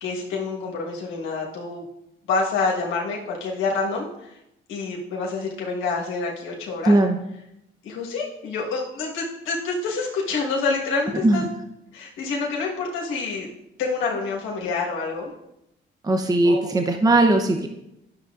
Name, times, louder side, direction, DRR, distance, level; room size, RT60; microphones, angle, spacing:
voice 1, 0.0-1.8 2.3-4.4 4.7-7.0 7.8-11.4 11.9-13.5 13.8-15.3 16.4-16.6, left 4 dB, 90° left, -2 dB, 1.4 m, -27 dB
voice 2, 6.8-7.2 11.2-11.4 16.0-17.7, right 2 dB, 20° right, 4 dB, 0.7 m, -19 dB
10.5 x 6.6 x 2.4 m, 0.85 s
cardioid pair, 90°, 20 cm